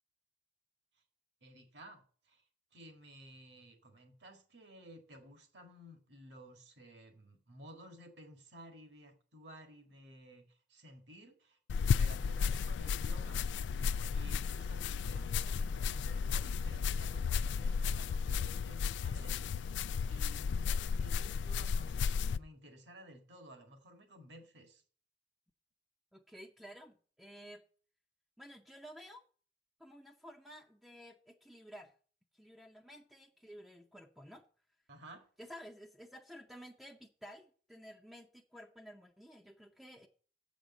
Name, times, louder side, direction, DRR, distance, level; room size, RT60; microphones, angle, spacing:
voice 1, 1.4-2.4 2.7-13.4 13.7-19.4 20.1-24.8 34.9-35.3, equal, 70° right, 1.7 m, -55 dB
sound 1, 11.7-22.4, left 6 dB, 80° left, 0.3 m, -34 dB
voice 2, 26.1-27.6 28.4-29.2 29.8-31.9 32.3-34.4 35.4-40.1, equal, ahead, 0.5 m, -53 dB
7.7 x 5.1 x 7.3 m
head